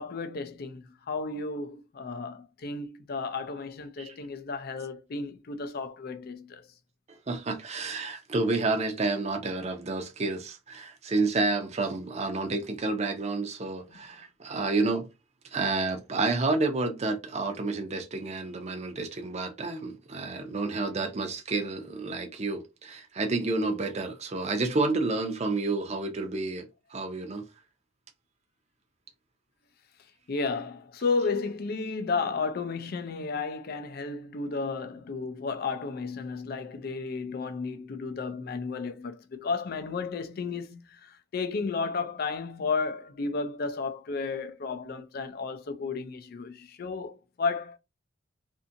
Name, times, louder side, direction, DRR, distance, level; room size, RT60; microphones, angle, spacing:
voice 1, 0.0-6.7 13.9-14.0 30.3-47.8, left 4 dB, 50° left, 0.4 m, -33 dB
voice 2, 7.3-15.1 15.5-27.4, right 3 dB, 35° right, 0.5 m, -30 dB
2.6 x 2.6 x 2.5 m
head